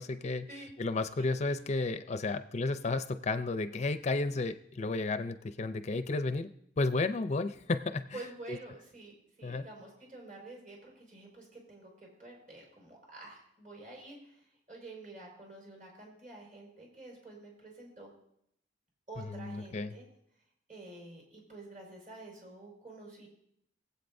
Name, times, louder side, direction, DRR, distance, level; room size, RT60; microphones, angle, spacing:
voice 1, 0.0-0.5 0.8-6.5 6.8-8.2 8.5-8.6 9.4-9.7 19.3-19.9, left 3 dB, 40° left, 10 dB, 0.5 m, -32 dB
voice 2, 8.1-18.1 19.1-20.0 20.7-23.3, right 2 dB, 45° right, -3 dB, 4.9 m, -49 dB
22.5 x 8.1 x 2.6 m, 0.74 s
head